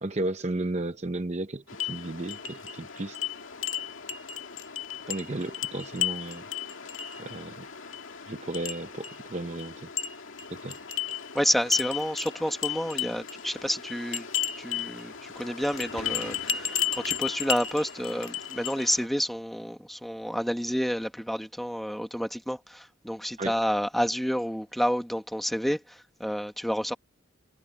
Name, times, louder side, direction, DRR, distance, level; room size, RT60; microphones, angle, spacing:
voice 1, 0.0-3.2 5.1-6.4 7.2-7.7 8.3-9.9 10.5-10.8 23.4-23.5, right 2 dB, 35° right, 0.7 m, -34 dB
sound 1, 1.7-19.1, left 9 dB, 75° left, 2.2 m, -34 dB
voice 2, 11.3-14.3 14.6-27.0, equal, ahead, 1.6 m, -29 dB
head